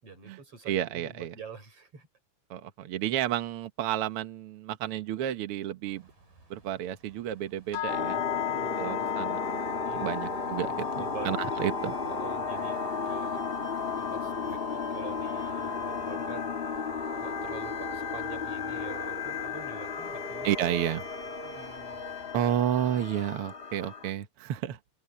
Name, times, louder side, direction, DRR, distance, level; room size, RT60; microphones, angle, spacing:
voice 1, 0.0-2.1 8.3-8.9 9.9-10.2 11.0-11.7 12.1-13.4 14.0-16.9 17.2-20.5 21.4-22.0, right 6 dB, 45° right, 7.0 m, -46 dB
voice 2, 0.7-1.3 2.5-6.1 6.5-8.2 8.8-9.4 9.9-11.9 20.4-21.0 22.3-24.8, right 11 dB, 65° right, 1.4 m, -31 dB
sound 1, 5.9-22.3, right 3 dB, 90° right, 9.4 m, -55 dB
sound 2, 7.7-17.8, left 14 dB, 75° left, 1.9 m, -38 dB
sound 3, 7.9-24.1, left 4 dB, 50° left, 0.7 m, -34 dB
omnidirectional pair, 3.8 m